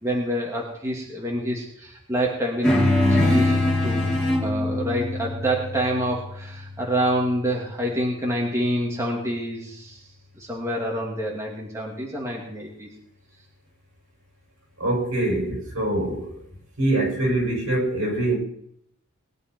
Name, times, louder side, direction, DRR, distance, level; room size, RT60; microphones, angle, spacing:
voice 1, 0.0-4.1 4.4-10.0 10.4-12.9, right 1 dB, 15° right, -3 dB, 2.6 m, -27 dB
sound 1, 2.6-7.4, left 1 dB, 5° left, 4.2 m, -23 dB
voice 2, 14.8-16.4 16.8-18.4, right 1 dB, 70° right, -1 dB, 6.8 m, -24 dB
20.5 x 11.0 x 4.6 m, 0.71 s
head